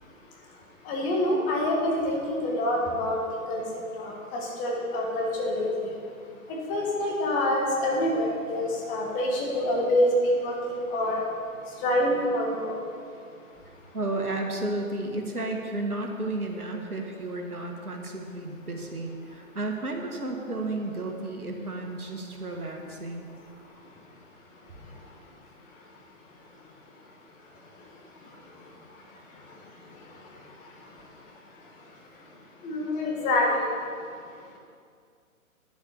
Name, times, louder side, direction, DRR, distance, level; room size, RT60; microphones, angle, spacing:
voice 1, 0.8-3.2 3.5-3.6 4.0-5.9 6.5-11.2 11.8-12.8 32.6-33.7, left 1 dB, 20° left, -2 dB, 1.7 m, -26 dB
voice 2, 13.9-23.3, right 2 dB, 90° right, 2 dB, 1.8 m, -32 dB
10.5 x 7.2 x 6.8 m, 2.2 s
figure-of-eight pair, 135°, 43 cm